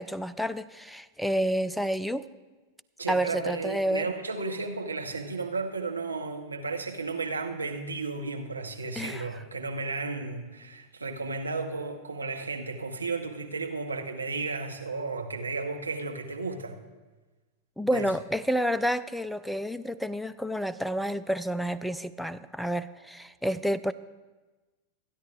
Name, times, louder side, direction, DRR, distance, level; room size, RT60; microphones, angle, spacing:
voice 1, 0.0-2.3 3.1-4.1 9.0-9.2 17.8-23.9, equal, ahead, 15 dB, 0.4 m, -29 dB
voice 2, 3.0-16.8 17.9-18.1, right 3 dB, 80° right, 3 dB, 1.0 m, -33 dB
26.5 x 9.9 x 2.4 m, 1.2 s
figure-of-eight pair, 90°, 0 cm